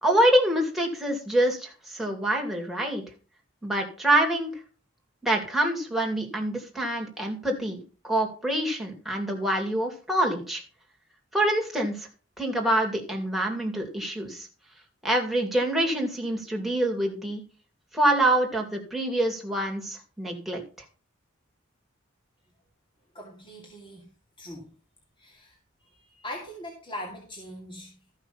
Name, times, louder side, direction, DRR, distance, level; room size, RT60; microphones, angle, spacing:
voice 1, 0.0-3.0 3.6-4.5 5.2-10.6 11.3-12.1 12.4-14.5 15.0-17.4 17.9-20.6, right 1 dB, ahead, 0 dB, 2.6 m, -26 dB
voice 2, 23.1-24.1 24.4-24.7 25.2-25.6 25.8-28.1, left 1 dB, 25° left, -1 dB, 2.4 m, -41 dB
14.0 x 5.9 x 5.7 m, 0.36 s
head